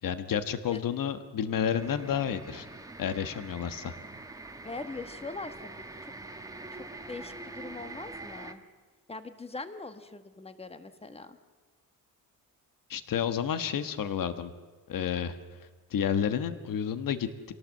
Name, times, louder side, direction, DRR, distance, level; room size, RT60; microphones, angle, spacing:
voice 1, 0.0-2.7 3.0-3.9 12.9-14.5 14.9-15.4 15.9-17.5, left 8 dB, 65° left, 10 dB, 1.5 m, -30 dB
sound 1, 1.7-8.5, right 2 dB, 10° right, 1.5 m, -44 dB
voice 2, 4.6-5.5 6.7-8.6 9.1-11.4, left 3 dB, 15° left, 9 dB, 1.5 m, -41 dB
27.5 x 18.0 x 7.8 m, 1.4 s
cardioid pair, 140°, 35 cm